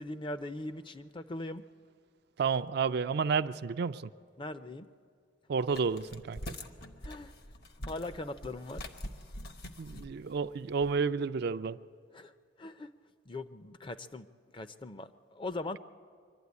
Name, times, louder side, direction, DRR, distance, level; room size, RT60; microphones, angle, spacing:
voice 1, 0.0-1.6 4.4-4.9 7.0-7.3 7.9-8.8 12.1-12.3 12.6-12.9 13.3-14.3 14.5-15.8, left 2 dB, 25° left, 0.5 m, -40 dB
voice 2, 2.4-4.1 5.5-6.5 9.8-11.8, right 5 dB, 60° right, 0.4 m, -31 dB
sound 1, 5.7-11.0, left 1 dB, 55° left, 1.0 m, -45 dB
23.5 x 12.0 x 9.5 m
head